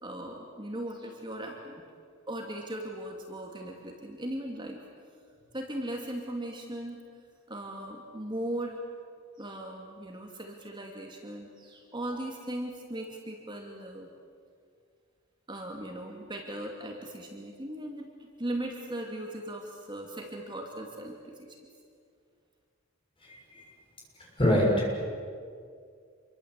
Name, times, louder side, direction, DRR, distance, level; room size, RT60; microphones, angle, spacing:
voice 1, 0.0-1.8 2.3-4.8 5.5-7.0 7.5-8.8 9.4-14.1 15.5-21.6, right 1 dB, 25° right, 1 dB, 2.5 m, -38 dB
voice 2, 23.2-23.6 24.4-25.0, equal, 25° left, -1 dB, 7.0 m, -25 dB
27.5 x 23.0 x 8.3 m, 2.2 s
head